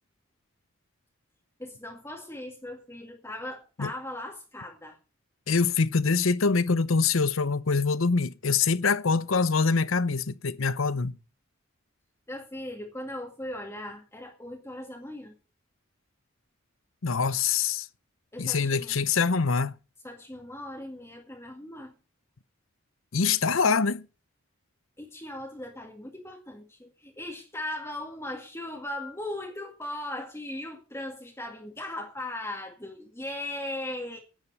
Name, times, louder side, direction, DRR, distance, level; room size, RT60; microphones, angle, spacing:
voice 1, 1.6-5.0 12.3-15.3 18.3-19.0 20.0-22.0 25.0-34.2, left 1 dB, 15° left, 2.0 m, -38 dB
voice 2, 5.5-11.2 17.0-17.9 18.4-19.7 23.1-24.1, left 4 dB, 80° left, 0.8 m, -24 dB
10.5 x 8.9 x 8.0 m
head